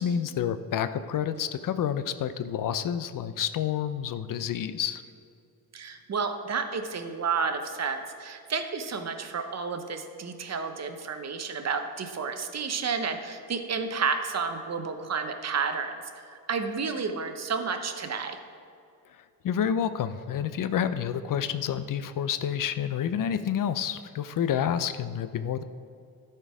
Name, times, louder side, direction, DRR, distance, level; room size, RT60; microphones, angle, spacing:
voice 1, 0.0-5.0 19.4-25.6, left 9 dB, 60° left, 12 dB, 0.5 m, -29 dB
voice 2, 5.7-18.4, right 5 dB, 45° right, 7 dB, 0.8 m, -31 dB
12.5 x 4.5 x 4.7 m, 2.5 s
cardioid pair, 110°, 36 cm